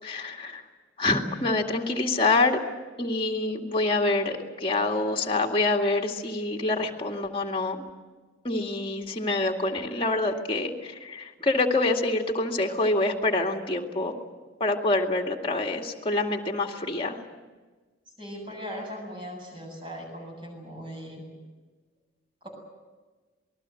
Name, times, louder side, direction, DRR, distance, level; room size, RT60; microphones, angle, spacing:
voice 1, 0.0-0.6 1.0-2.6 3.0-7.8 8.4-14.1 14.6-17.2, left 2 dB, 25° left, 2 dB, 2.2 m, -26 dB
voice 2, 18.2-21.3 22.4-22.5, equal, 25° right, 2 dB, 7.5 m, -39 dB
27.0 x 20.5 x 7.8 m, 1.3 s
head